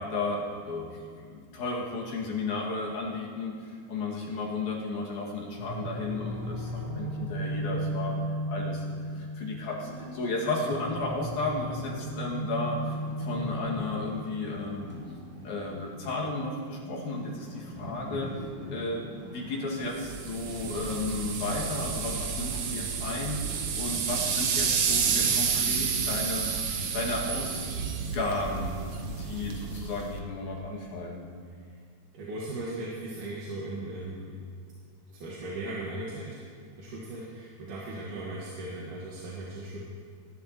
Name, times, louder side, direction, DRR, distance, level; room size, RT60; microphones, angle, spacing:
voice 1, 0.0-8.8 9.1-14.9 15.4-18.3 18.7-19.1 19.3-28.7 29.1-31.3, left 2 dB, 70° left, -4 dB, 3.3 m, -34 dB
sound 1, 5.5-18.3, equal, 40° right, 1.8 m, -36 dB
sound 2, 12.3-22.4 22.7-27.2 27.5-27.6 28.2-28.6, left 1 dB, 5° right, 2.7 m, -44 dB
sound 3, 19.9-30.2, right 6 dB, 65° right, 1.5 m, -30 dB
voice 2, 32.1-34.4 35.1-36.4 36.8-39.8, right 2 dB, 80° right, -5 dB, 2.9 m, -38 dB
20.0 x 11.0 x 3.0 m, 2.2 s
omnidirectional pair, 3.6 m